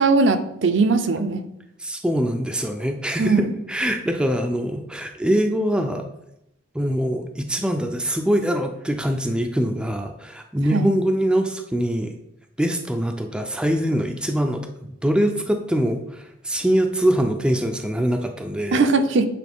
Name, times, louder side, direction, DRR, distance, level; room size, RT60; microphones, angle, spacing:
voice 1, 0.0-1.4 3.2-3.5 10.7-10.9 18.7-19.3, right 4 dB, 60° right, 8 dB, 0.6 m, -19 dB
voice 2, 1.8-6.1 6.7-12.1 12.6-14.7 15.0-18.8, equal, 5° right, 4 dB, 0.4 m, -23 dB
8.4 x 4.1 x 3.5 m, 0.83 s
head